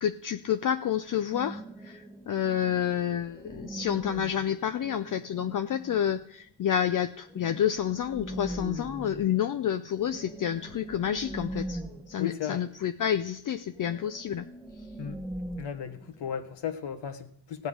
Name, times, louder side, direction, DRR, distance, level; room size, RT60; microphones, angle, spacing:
voice 1, 0.0-11.8 12.1-14.5, left 9 dB, 45° left, 0.5 m, -29 dB
sound 1, 1.3-6.2 7.3-12.8 13.1-13.2 13.6-16.5, right 1 dB, ahead, 0.9 m, -41 dB
voice 2, 12.2-12.6 15.0-15.1 15.6-17.7, left 8 dB, 65° left, 1.3 m, -35 dB
16.0 x 8.2 x 5.0 m
cardioid pair, 95°, 45 cm